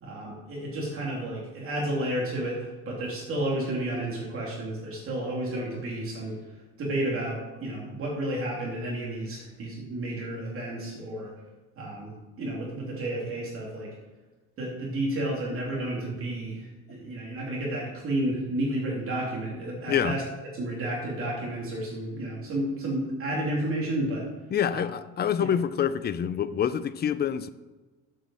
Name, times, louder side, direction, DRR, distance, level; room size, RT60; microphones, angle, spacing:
voice 1, 0.0-6.4 6.8-11.3 11.8-13.9 14.6-20.2 20.5-24.2 24.7-24.9 25.4-25.5, right 1 dB, 45° right, 2.9 m, -31 dB
voice 2, 24.5-27.5, left 8 dB, 30° left, 0.5 m, -26 dB
7.6 x 6.2 x 6.9 m
cardioid pair, 120°, 32 cm